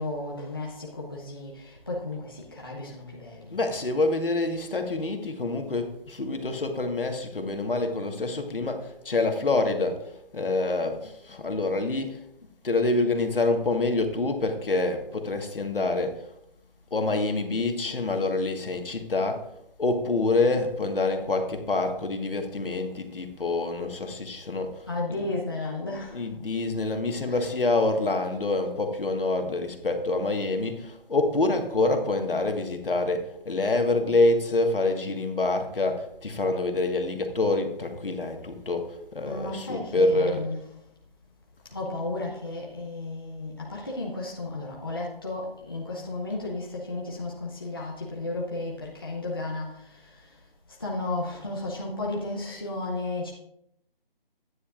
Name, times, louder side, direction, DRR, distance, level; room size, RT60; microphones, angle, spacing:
voice 1, 0.0-3.6 24.9-26.2 27.3-27.5 39.3-40.6 41.7-50.3 50.8-53.3, left 2 dB, 25° left, -4 dB, 0.9 m, -33 dB
voice 2, 3.5-12.2 12.6-16.3 16.9-19.5 19.8-25.3 26.1-40.5, left 2 dB, 65° left, 5 dB, 1.6 m, -26 dB
11.5 x 9.5 x 2.5 m, 0.77 s
hypercardioid pair, 180°, 29 cm